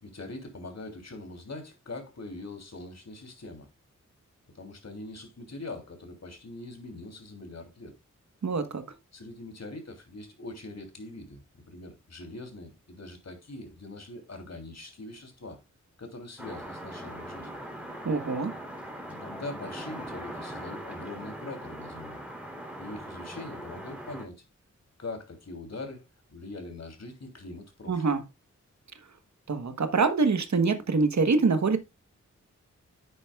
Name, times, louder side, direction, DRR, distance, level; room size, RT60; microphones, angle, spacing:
voice 1, 0.0-3.7 4.5-8.0 9.1-15.6 16.0-17.5 19.1-22.2 22.8-24.4 25.0-26.0 26.3-28.0, left 2 dB, 60° left, 3.1 m, -42 dB
voice 2, 8.4-8.8 18.0-18.5 27.9-28.2 29.5-31.8, right 4 dB, 65° right, 1.3 m, -25 dB
sound 1, 16.4-24.2, equal, 5° right, 3.3 m, -40 dB
10.0 x 9.1 x 2.4 m
cardioid pair, 60°, 30 cm